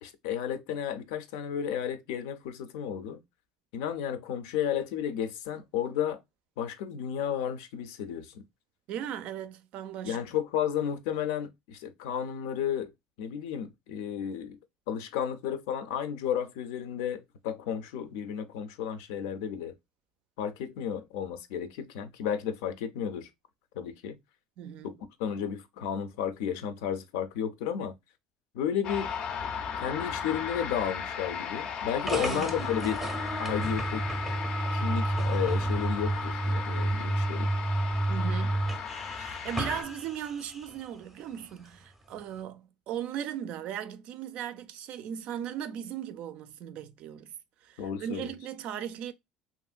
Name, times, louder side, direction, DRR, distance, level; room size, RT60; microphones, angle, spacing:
voice 1, 0.0-3.2 3.7-6.2 6.6-8.4 10.0-12.9 13.2-14.6 14.9-19.7 20.4-23.3 23.7-24.2 24.8-24.9 25.2-28.0 28.5-29.1 29.8-33.0 33.4-34.0 34.7-37.5 47.8-48.3, left 9 dB, 90° left, 0.5 m, -33 dB
voice 2, 8.9-10.2 24.6-24.9 32.1-32.6 38.1-38.6 39.2-47.3 47.6-49.1, right 10 dB, 55° right, 0.4 m, -37 dB
sound 1, 28.8-39.8, left 7 dB, 40° left, 0.4 m, -36 dB
sound 2, 32.1-40.8, right 1 dB, 5° right, 0.6 m, -31 dB
2.9 x 2.6 x 2.4 m
cardioid pair, 145°, 2 cm